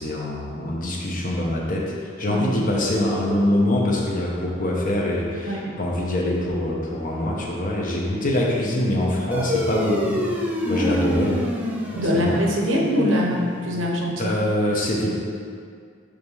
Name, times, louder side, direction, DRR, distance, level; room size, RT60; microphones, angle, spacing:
voice 1, 0.0-11.4 12.1-12.4 14.2-15.2, left 1 dB, 45° left, -2 dB, 0.9 m, -24 dB
sound 1, 9.3-14.2, left 1 dB, 10° right, 0.5 m, -28 dB
voice 2, 12.0-14.4, left 1 dB, 75° right, 0 dB, 0.9 m, -23 dB
5.0 x 3.5 x 5.5 m, 2.2 s
head